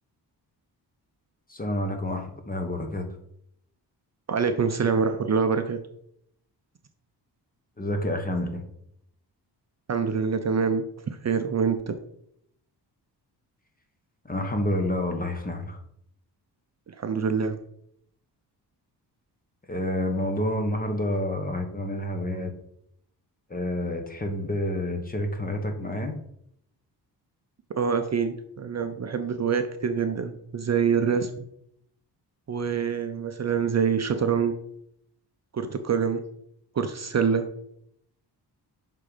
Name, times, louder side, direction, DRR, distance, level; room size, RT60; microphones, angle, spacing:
voice 1, 1.5-3.1 7.8-8.6 14.2-15.8 19.7-22.5 23.5-26.2, left 1 dB, 20° left, 5 dB, 1.2 m, -29 dB
voice 2, 4.3-5.8 9.9-12.0 16.9-17.6 27.8-31.3 32.5-34.5 35.5-36.2 36.8-37.5, right 6 dB, 40° right, 7 dB, 0.6 m, -25 dB
6.7 x 3.8 x 5.0 m, 0.73 s
cardioid pair, 100°, 41 cm